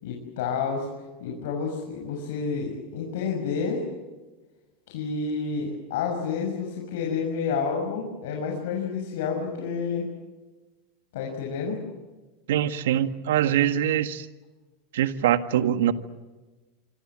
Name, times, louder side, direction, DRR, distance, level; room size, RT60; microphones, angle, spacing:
voice 1, 0.0-0.9 1.2-3.8 4.9-10.1 11.1-11.8, left 5 dB, 75° left, 0 dB, 6.6 m, -29 dB
voice 2, 12.5-14.3 14.9-15.9, right 11 dB, 85° right, 9 dB, 1.7 m, -23 dB
26.5 x 25.5 x 7.5 m, 1.2 s
supercardioid pair, 125°, 0 cm